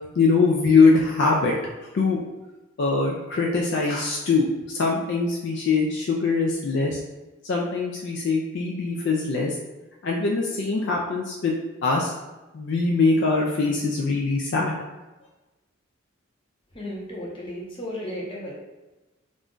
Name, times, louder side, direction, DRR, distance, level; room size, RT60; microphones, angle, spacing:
voice 1, 0.2-1.5 1.9-2.2 2.8-7.0 7.4-9.6 10.0-12.1 12.5-14.8, left 4 dB, 55° left, -2 dB, 0.3 m, -22 dB
voice 2, 16.7-18.5, equal, 25° left, -4 dB, 0.7 m, -34 dB
2.5 x 2.2 x 3.6 m, 1.1 s
head